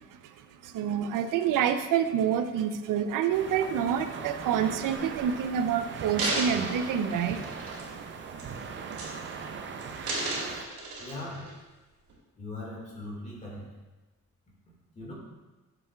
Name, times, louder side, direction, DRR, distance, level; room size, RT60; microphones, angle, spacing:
voice 1, 0.6-7.4, right 8 dB, 90° right, 9 dB, 0.6 m, -27 dB
sound 1, 3.3-10.6, right 5 dB, 40° right, 0.4 m, -39 dB
sound 2, 5.3-5.4 5.9-8.0 8.4-8.6 8.9-9.5 9.8-11.5 12.1-12.2, right 2 dB, 65° right, 2.2 m, -34 dB
voice 2, 11.0-11.5 12.4-13.7 15.0-15.1, left 2 dB, 20° left, -3 dB, 1.8 m, -40 dB
8.6 x 7.0 x 2.3 m, 1.2 s
wide cardioid pair, 175°, 31 cm